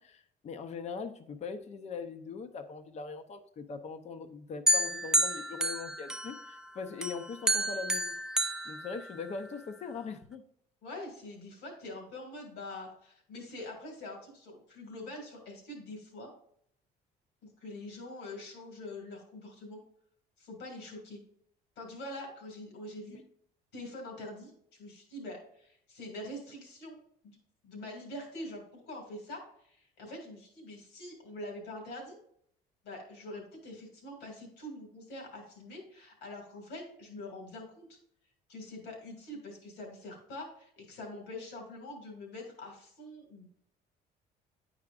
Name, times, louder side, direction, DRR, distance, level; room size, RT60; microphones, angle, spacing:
voice 1, 0.0-8.1 8.6-10.4 23.1-23.2, left 5 dB, 40° left, 9 dB, 0.6 m, -41 dB
sound 1, 4.7-6.6 7.0-9.5, right 1 dB, 5° right, 0.3 m, -30 dB
voice 2, 10.8-16.3 17.6-19.8 20.4-21.2 21.8-23.2 23.7-27.4 27.6-32.2 32.8-38.0 38.5-43.5, left 1 dB, 85° left, 1 dB, 2.3 m, -44 dB
9.4 x 4.8 x 2.4 m, 0.68 s
cardioid pair, 110°, 17 cm